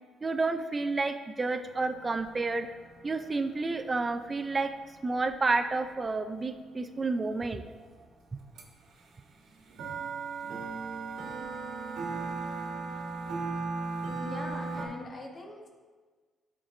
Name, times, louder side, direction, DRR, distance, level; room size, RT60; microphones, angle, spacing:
voice 1, 0.2-2.7 3.0-4.7 5.0-7.7, right 3 dB, 30° right, 7 dB, 0.4 m, -30 dB
sound 1, 1.6-7.6 8.0-8.1 8.3-8.6 8.9-14.9, right 4 dB, 80° right, 1.3 m, -37 dB
voice 2, 14.2-15.7, left 2 dB, 35° left, 0 dB, 1.5 m, -42 dB
12.5 x 4.5 x 3.1 m, 1.4 s
cardioid pair, 90°, 0 cm